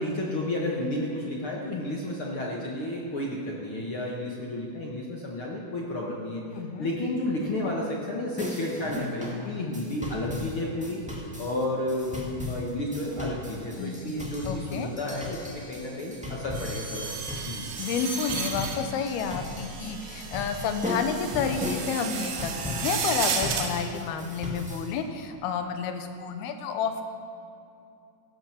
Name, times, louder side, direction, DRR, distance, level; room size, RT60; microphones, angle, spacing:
voice 1, 0.0-6.4 6.8-11.0 11.4-17.1 17.5-17.7, left 1 dB, 60° left, -2 dB, 1.4 m, -31 dB
voice 2, 6.5-6.9 13.8-14.9 17.8-27.0, left 6 dB, 90° left, 7 dB, 2.9 m, -30 dB
sound 1, 8.4-24.9, left 2 dB, 5° right, 0.6 m, -37 dB
sound 2, 16.5-23.7, right 5 dB, 90° right, 3.3 m, -34 dB
16.0 x 12.5 x 5.9 m, 2.6 s
omnidirectional pair, 4.4 m